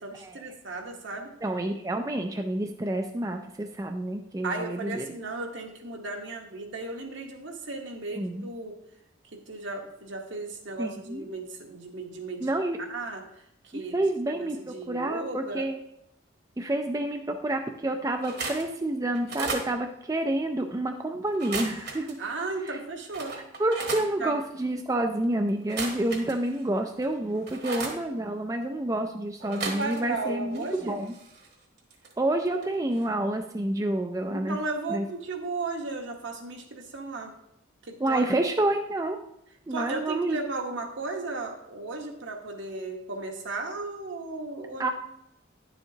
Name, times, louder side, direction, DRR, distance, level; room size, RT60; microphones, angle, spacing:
voice 1, 0.0-1.3 4.4-8.8 9.3-12.5 12.9-13.2 13.6-14.0 14.3-15.7 22.2-23.4 24.2-24.4 29.6-31.0 34.3-37.3 37.8-38.2 39.7-44.9, right 3 dB, 70° right, 3 dB, 1.2 m, -35 dB
voice 2, 1.4-5.1 8.2-8.5 10.8-11.2 12.4-12.8 13.7-15.8 16.6-22.2 22.6-22.8 23.6-31.1 32.2-34.6 34.9-35.0 38.0-39.2 39.7-40.4 44.8-44.9, right 1 dB, 15° right, 4 dB, 0.3 m, -29 dB
sound 1, 18.2-18.7 19.1-19.7 21.3-22.1 22.7-22.8 23.1-24.1 25.6-26.6 27.0-28.0 29.4-30.2 30.5-32.1 32.5-32.7 32.9-33.1, right 3 dB, 55° right, 1.2 m, -35 dB
10.0 x 7.0 x 2.8 m, 0.79 s
head